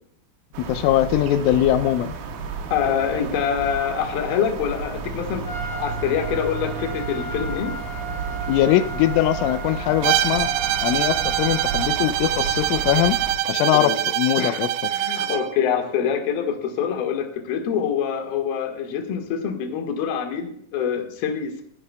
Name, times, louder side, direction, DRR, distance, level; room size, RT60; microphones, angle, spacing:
sound 1, 0.5-13.3, right 4 dB, 75° right, 3.8 m, -32 dB
voice 1, 0.6-2.1 8.5-10.5 10.8-13.2 13.5-14.7, left 13 dB, 90° left, 11 dB, 3.1 m, -21 dB
voice 2, 2.7-7.7 13.7-14.0 14.4-21.6, left 8 dB, 65° left, 4 dB, 3.0 m, -25 dB
Trumpet, 5.4-12.0, right 3 dB, 35° left, 2.5 m, -35 dB
Bowed string instrument, 10.0-15.5, right 13 dB, 90° right, 3.1 m, -24 dB
21.5 x 9.9 x 2.3 m, 0.67 s
omnidirectional pair, 5.5 m